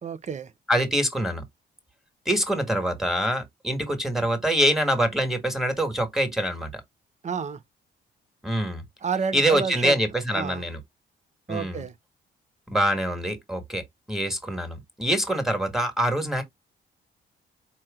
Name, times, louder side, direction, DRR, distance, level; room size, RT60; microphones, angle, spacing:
voice 1, 0.0-0.5 7.2-7.6 9.0-9.9 10.3-10.6 11.5-11.9, right 6 dB, 35° right, 0.8 m, -30 dB
voice 2, 0.7-1.4 2.3-6.8 8.4-8.8 9.3-10.8 11.5-11.8 12.7-16.4, equal, ahead, 1.7 m, -25 dB
4.4 x 3.1 x 3.7 m
cardioid pair, 90°, 20 cm